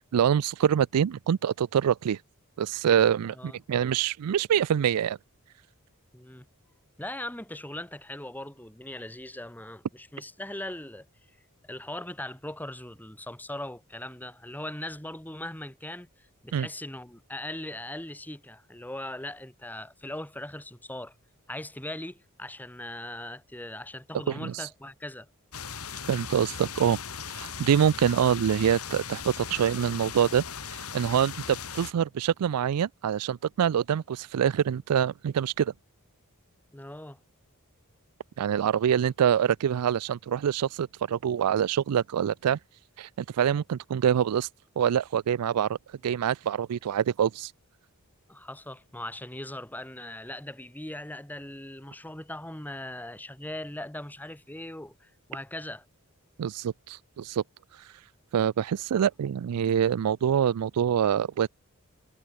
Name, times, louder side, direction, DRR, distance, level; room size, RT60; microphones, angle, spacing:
voice 1, 0.0-2.2 2.6-5.2 16.5-16.7 24.3-24.7 26.1-27.0 27.3-35.7 38.4-42.6 43.0-44.5 44.8-45.8 46.0-47.5 56.4-57.4 57.7-57.9 58.3-61.5, right 8 dB, 90° right, 0.4 m, -25 dB
voice 2, 3.3-3.6 6.1-6.5 7.0-11.1 11.6-21.1 21.5-25.3 36.7-37.2 48.3-55.8 58.9-59.0, left 1 dB, 10° left, 2.2 m, -39 dB
sound 1, 25.5-31.9, left 6 dB, 75° left, 5.3 m, -38 dB
head